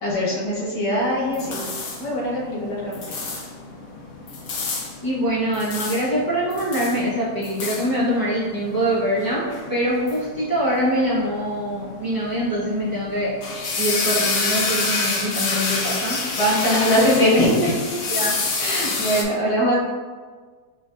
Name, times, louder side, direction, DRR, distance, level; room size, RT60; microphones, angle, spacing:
voice 1, 0.0-1.6 1.9-3.2 16.4-17.7 18.6-19.7, equal, 75° left, -6 dB, 1.8 m, -22 dB
sound 1, 1.0-19.2, left 3 dB, 60° left, 0.8 m, -29 dB
voice 2, 5.0-13.3 13.8-16.2 16.8-18.3, equal, 20° left, -8 dB, 0.7 m, -24 dB
5.0 x 3.1 x 2.5 m, 1.5 s
omnidirectional pair, 1.8 m